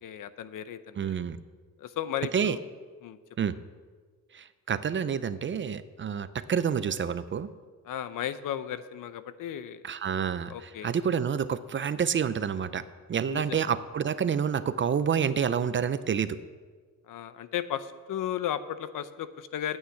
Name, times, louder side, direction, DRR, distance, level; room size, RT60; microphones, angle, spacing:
voice 1, 0.0-1.2 1.8-2.6 3.0-3.2 7.9-9.8 10.5-10.9 13.3-13.6 17.1-19.8, left 10 dB, 65° left, 13 dB, 0.8 m, -35 dB
voice 2, 1.0-1.4 2.3-2.6 3.4-3.5 4.3-7.5 9.8-12.8 13.1-16.4, right 7 dB, 35° right, 14 dB, 0.5 m, -28 dB
9.5 x 8.7 x 8.3 m, 1.5 s
cardioid pair, 120°, 34 cm